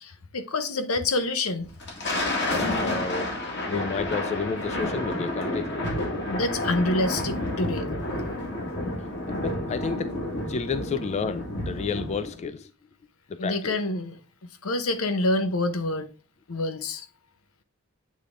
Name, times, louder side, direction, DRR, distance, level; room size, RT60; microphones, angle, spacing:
voice 1, 0.0-1.7 6.3-7.9 13.4-14.2 14.6-16.1 16.5-17.1, left 2 dB, 80° left, 0.8 m, -27 dB
Thunder, 1.6-12.4, left 1 dB, 55° left, 2.0 m, -30 dB
voice 2, 2.5-3.3 3.7-5.8 9.3-10.1 10.5-12.7 13.3-13.8, left 5 dB, 30° left, 0.3 m, -31 dB
8.3 x 3.7 x 3.4 m
head